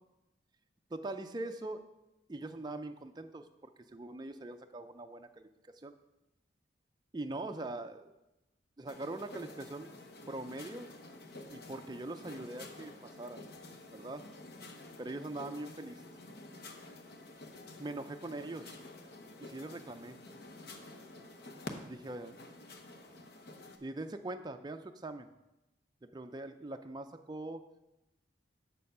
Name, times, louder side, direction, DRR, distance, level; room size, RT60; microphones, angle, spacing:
voice 1, 0.9-1.8 2.3-5.5 5.7-5.9 7.1-8.1 8.8-9.9 10.3-10.9 11.5-13.4 13.9-14.2 15.0-16.0 17.8-18.7 19.4-20.2 21.8-22.4 23.8-25.3 26.0-27.6, right 2 dB, 20° right, 7 dB, 0.4 m, -42 dB
sound 1, 8.9-23.8, left 2 dB, 55° left, 0.9 m, -50 dB
7.4 x 6.8 x 5.4 m, 0.95 s
head